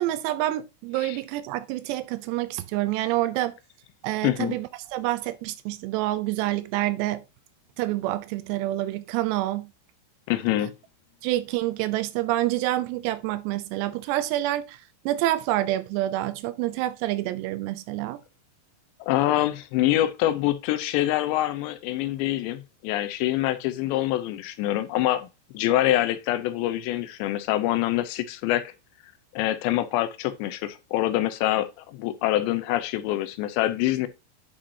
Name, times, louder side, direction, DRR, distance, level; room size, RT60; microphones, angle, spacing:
voice 1, 0.0-3.6 4.0-7.2 7.8-9.7 11.2-18.2, right 15 dB, 85° right, 2.6 m, -27 dB
voice 2, 4.2-4.6 10.3-10.7 19.0-25.3 25.5-28.7 29.3-34.1, left 14 dB, 85° left, 2.9 m, -25 dB
10.0 x 5.2 x 2.7 m
omnidirectional pair, 5.1 m